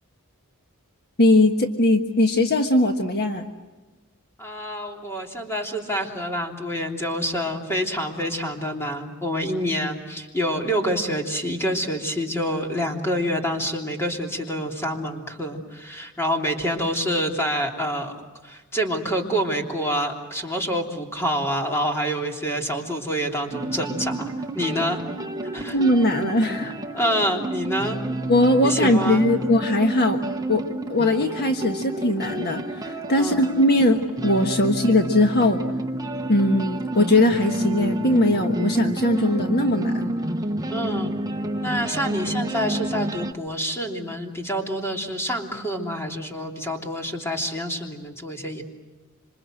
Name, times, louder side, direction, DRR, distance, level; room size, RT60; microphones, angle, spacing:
voice 1, 1.2-3.5 25.7-26.8 28.3-30.2 30.5-30.6 30.9-35.6 36.3-40.1, left 1 dB, 45° left, 4 dB, 1.4 m, -20 dB
voice 2, 4.4-18.1 18.4-25.0 25.5-25.8 26.9-28.0 28.6-29.5 33.2-33.4 40.7-41.1 41.6-48.6, equal, 10° left, 1 dB, 3.2 m, -27 dB
sound 1, 23.5-43.3, right 1 dB, 15° right, 1.0 m, -29 dB
27.0 x 26.5 x 7.8 m, 1.2 s
head